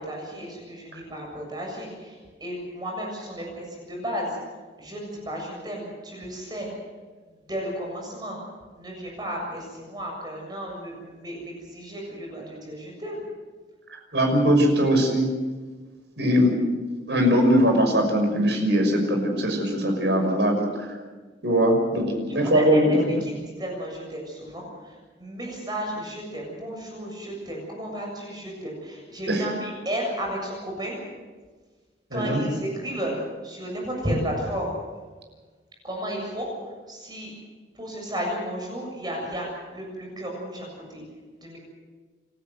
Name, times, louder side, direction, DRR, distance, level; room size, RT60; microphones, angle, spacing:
voice 1, 0.0-4.3 4.8-6.7 7.5-8.4 8.8-13.2 22.3-23.0 23.2-31.0 32.1-33.1 33.4-34.7 35.8-36.5 36.9-37.3 37.8-39.5 39.7-41.0 41.4-41.6, equal, 25° right, 0 dB, 7.2 m, -33 dB
voice 2, 14.1-15.3 16.2-16.6 17.1-20.9 21.4-23.1 29.3-29.4 32.1-32.4, equal, 70° right, 3 dB, 6.0 m, -21 dB
29.5 x 13.5 x 8.0 m, 1.4 s
head